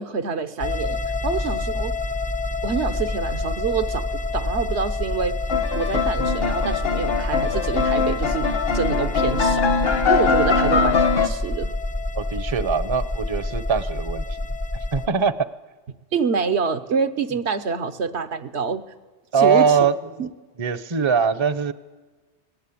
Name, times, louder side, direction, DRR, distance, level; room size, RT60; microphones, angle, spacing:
voice 1, 0.0-1.9 2.6-4.1 4.3-5.4 5.7-8.5 8.7-9.7 10.1-11.7 16.1-18.8 19.4-19.8 20.2-20.3, right 6 dB, 75° right, 10 dB, 1.4 m, -26 dB
sound 1, 0.6-15.1, left 2 dB, 10° left, 0.5 m, -27 dB
sound 2, 5.5-11.3, left 5 dB, 60° left, 1.4 m, -22 dB
voice 2, 12.1-14.2 14.9-15.5 19.3-20.3 20.6-21.7, right 6 dB, 30° right, 14 dB, 0.7 m, -22 dB
28.0 x 19.5 x 8.5 m, 1.3 s
omnidirectional pair, 1.1 m